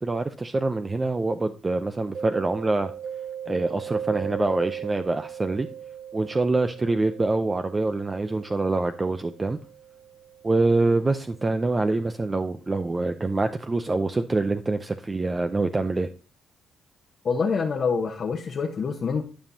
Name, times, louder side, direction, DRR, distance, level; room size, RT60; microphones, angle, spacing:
voice 1, 0.0-2.9 3.5-5.7 6.1-9.6 10.4-16.1, right 2 dB, 25° right, 8 dB, 0.5 m, -25 dB
Mallet percussion, 2.1-11.7, right 8 dB, 65° right, 0.7 m, -39 dB
voice 2, 17.2-19.2, left 5 dB, 50° left, 0 dB, 1.0 m, -26 dB
11.5 x 5.3 x 2.7 m, 0.34 s
cardioid pair, 90°, 0 cm